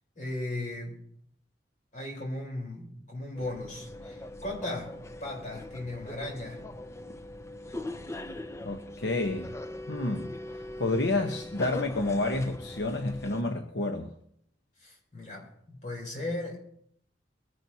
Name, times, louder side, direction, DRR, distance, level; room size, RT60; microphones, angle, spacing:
voice 1, 0.2-1.0 1.9-6.6 14.8-16.6, left 1 dB, 45° left, -1 dB, 4.1 m, -37 dB
sound 1, 3.3-13.4, left 1 dB, 15° left, 0.5 m, -41 dB
voice 2, 8.6-9.6 9.9-14.1, left 2 dB, 75° left, 4 dB, 1.0 m, -30 dB
22.0 x 10.5 x 2.8 m, 0.67 s
head